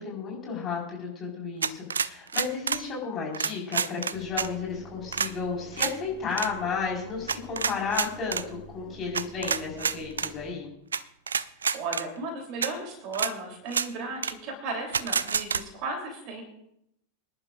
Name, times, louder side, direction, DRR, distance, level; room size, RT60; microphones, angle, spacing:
voice 1, 0.0-10.7, left 5 dB, 30° left, -2 dB, 4.8 m, -33 dB
sound 1, 1.6-2.8 3.3-4.5 5.1-5.3 5.8-5.9 6.3-6.5 7.3-8.4 9.1-10.3 10.9-11.0 11.3-12.0 12.6-12.7 13.1-13.3 13.7-13.9 14.2-14.3 14.9-15.6, right 6 dB, 70° right, 0.4 m, -28 dB
Engine, 4.1-10.5, equal, 5° left, 5.8 m, -48 dB
voice 2, 11.7-16.4, right 3 dB, 40° right, 2 dB, 3.4 m, -35 dB
25.5 x 11.0 x 2.6 m, 0.77 s
figure-of-eight pair, 90°, 0 cm